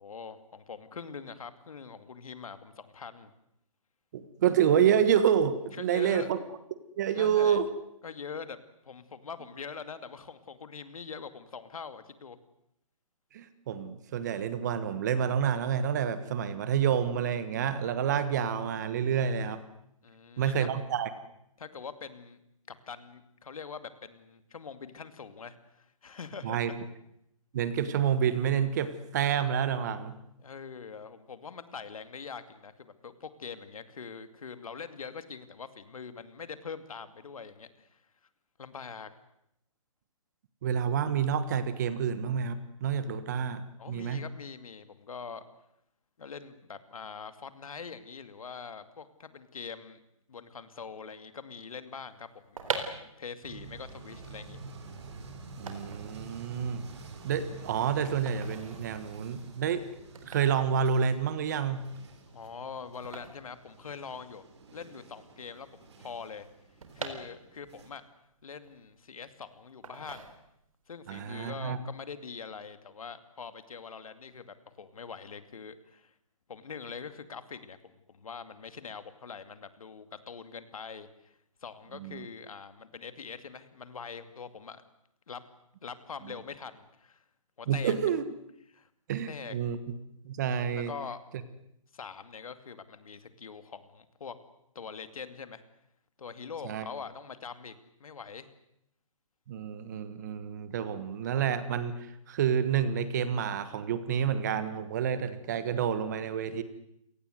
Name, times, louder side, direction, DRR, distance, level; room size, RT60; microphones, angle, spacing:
voice 1, 0.0-3.3 5.7-6.3 7.1-7.7 8.0-8.6 8.8-12.4 20.0-20.7 21.6-22.4 22.7-26.8 30.4-38.0 38.6-39.1 43.8-45.4 46.2-50.0 50.3-54.6 62.3-64.4 64.7-66.5 66.9-68.0 68.4-70.3 70.9-76.1 76.5-77.8 78.1-84.8 85.3-85.4 85.8-87.2 87.6-87.9 88.7-88.9 89.3-89.6 90.7-91.2 91.9-94.4 94.7-95.6 96.2-97.7 98.0-98.5, left 5 dB, 70° left, 11 dB, 2.5 m, -43 dB
voice 2, 4.1-6.4 7.0-7.7 13.3-19.6 20.4-21.1 26.4-26.7 27.5-30.2 40.6-44.2 55.6-56.9 57.2-59.8 60.2-61.8 71.1-71.8 81.9-82.3 87.7-88.2 89.1-89.8 90.2-90.9 96.6-96.9 99.5-106.6, right 8 dB, 30° right, 13 dB, 1.4 m, -28 dB
sound 1, 52.3-64.4 64.7-64.8 65.0-67.8 68.2-69.3 69.8-70.8 71.2-71.5, right 4 dB, 70° right, 4.1 m, -42 dB
sound 2, 53.4-67.9, right 3 dB, 50° right, 4.3 m, -49 dB
29.0 x 18.5 x 8.0 m, 0.78 s
hypercardioid pair, 170°, 18 cm